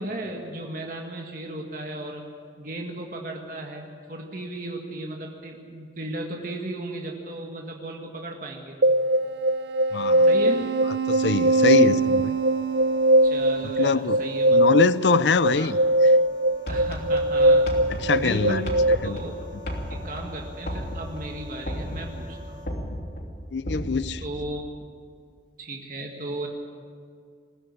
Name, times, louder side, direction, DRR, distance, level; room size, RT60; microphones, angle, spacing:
voice 1, 0.0-2.3 2.6-8.8 10.3-10.7 13.2-14.6 15.5-15.7 16.7-17.7 18.1-18.7 19.0-19.4 19.9-22.6 24.2-24.9 25.6-26.5, right 1 dB, 50° right, 1.9 m, -35 dB
sound 1, 8.8-18.9, right 1 dB, 75° right, 0.7 m, -21 dB
voice 2, 9.9-10.3 11.1-12.4 13.8-14.2 14.5-15.8 18.0-18.7 19.0-19.2 23.5-24.2, left 4 dB, 90° left, 0.6 m, -23 dB
sound 2, 11.5-22.7, equal, 25° right, 4.3 m, -47 dB
sound 3, 16.7-24.5, equal, 65° left, 3.0 m, -35 dB
21.0 x 16.0 x 8.6 m
head